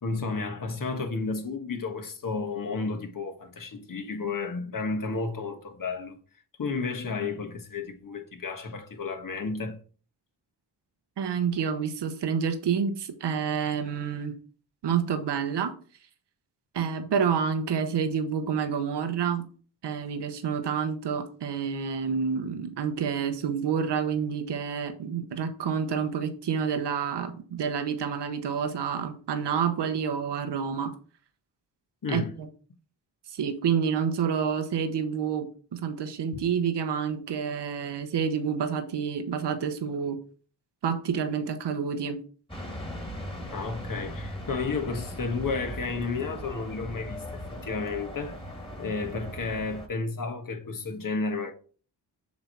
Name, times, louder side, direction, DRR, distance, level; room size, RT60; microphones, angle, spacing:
voice 1, 0.0-6.2 6.6-9.8 32.0-32.3 36.3-36.4 43.5-48.4 48.8-51.5, left 4 dB, 50° left, 1.4 m, -32 dB
voice 2, 11.2-14.4 14.8-15.7 16.7-19.5 19.8-30.9 32.1-32.5 33.3-40.2 40.8-42.2, right 7 dB, 70° right, 1.1 m, -28 dB
sound 1, 42.5-49.9, equal, 10° left, 2.1 m, -39 dB
7.4 x 3.0 x 5.6 m
cardioid pair, 65°, 43 cm